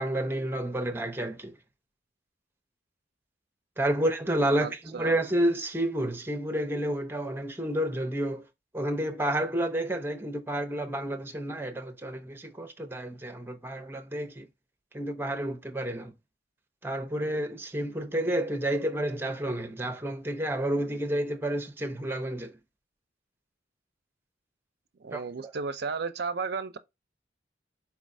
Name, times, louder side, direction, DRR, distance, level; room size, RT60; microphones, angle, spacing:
voice 1, 0.0-1.5 3.8-8.4 8.7-14.5 14.9-16.1 16.8-22.5 25.1-25.5, right 1 dB, 10° right, 0.6 m, -30 dB
voice 2, 4.6-5.2 25.0-26.8, right 5 dB, 55° right, 0.4 m, -34 dB
4.5 x 3.1 x 2.6 m
head